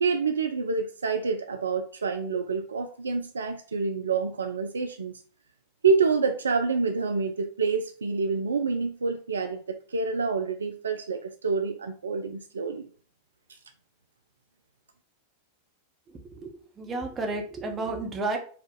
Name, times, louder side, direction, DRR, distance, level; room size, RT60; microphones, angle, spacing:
voice 1, 0.0-5.1 5.8-12.9, right 4 dB, 70° right, 6 dB, 0.4 m, -27 dB
voice 2, 16.1-18.4, right 2 dB, 20° right, 2 dB, 1.0 m, -32 dB
4.2 x 2.3 x 3.9 m, 0.43 s
figure-of-eight pair, 90°, 0 cm